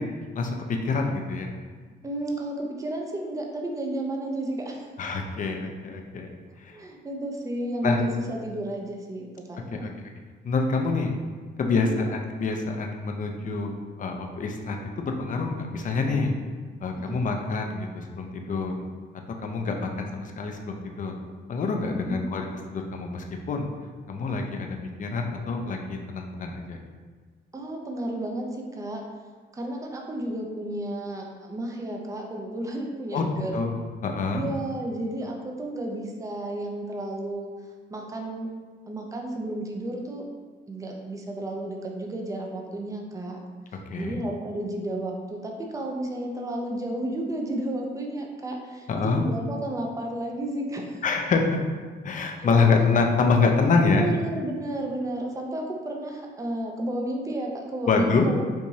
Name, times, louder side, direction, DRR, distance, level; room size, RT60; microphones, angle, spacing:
voice 1, 0.4-1.5 5.0-6.3 6.6-6.8 7.8-8.0 9.7-9.9 10.4-11.1 11.6-13.7 14.0-16.3 16.8-18.7 19.4-21.1 21.5-23.7 24.1-26.8 33.1-33.3 33.5-34.5 43.9-44.2 48.9-49.2 51.0-51.6 52.0-54.1 57.9-58.3, left 4 dB, 40° left, 3 dB, 0.5 m, -26 dB
voice 2, 2.0-4.9 6.7-9.9 11.9-12.0 17.0-17.2 22.1-22.2 27.5-29.0 29.5-33.6 34.3-37.5 37.9-38.5 38.9-40.3 40.7-43.4 44.0-51.0 52.4-52.7 53.7-58.4, right 1 dB, 15° right, 1 dB, 0.5 m, -32 dB
4.6 x 2.6 x 2.7 m, 1.5 s
cardioid pair, 90°, 20 cm